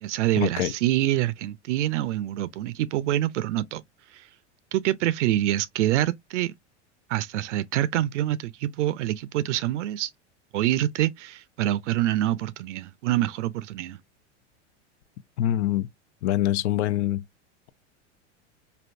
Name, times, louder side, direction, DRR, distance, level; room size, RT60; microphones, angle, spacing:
voice 1, 0.0-3.8 4.1-4.3 4.7-6.5 7.1-10.1 10.5-14.0, right 13 dB, 80° right, 0.5 m, -26 dB
voice 2, 15.4-15.9 16.2-17.2, left 13 dB, 70° left, 0.6 m, -24 dB
3.4 x 2.7 x 2.5 m
hypercardioid pair, 100°, 35 cm